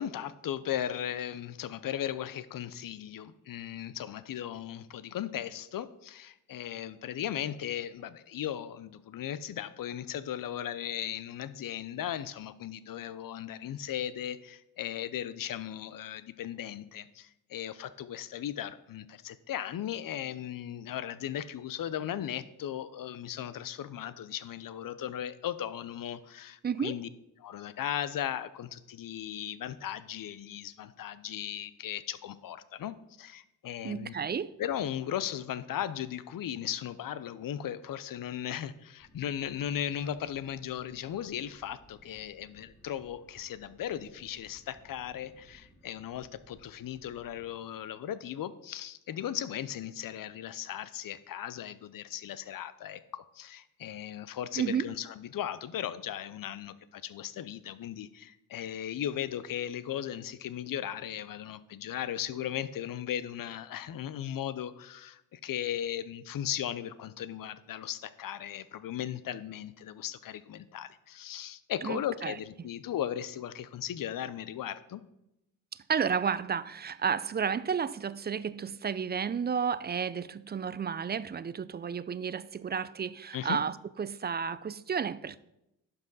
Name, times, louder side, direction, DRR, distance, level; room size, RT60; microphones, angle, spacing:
voice 1, 0.0-27.1 27.4-34.1 34.6-75.0 83.3-83.6, left 10 dB, 50° left, 0.7 m, -37 dB
voice 2, 26.6-26.9 33.8-34.5 54.6-54.9 71.8-72.4 75.7-85.4, right 7 dB, 25° right, 0.4 m, -32 dB
sound 1, 39.0-47.5, equal, 35° left, 2.8 m, -60 dB
11.0 x 5.4 x 4.0 m
supercardioid pair, 45°, 42 cm